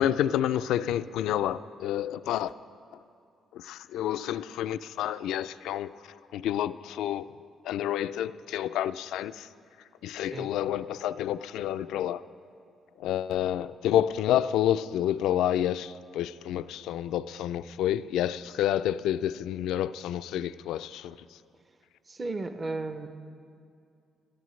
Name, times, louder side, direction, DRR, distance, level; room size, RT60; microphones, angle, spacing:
voice 1, 0.0-2.5 3.5-5.9 6.3-7.3 7.6-9.5 10.0-12.2 13.0-21.2, left 11 dB, 85° left, 0.3 m, -29 dB
voice 2, 22.1-23.2, right 3 dB, 30° right, 0.6 m, -34 dB
21.5 x 13.0 x 3.2 m
cardioid pair, 90°, 0 cm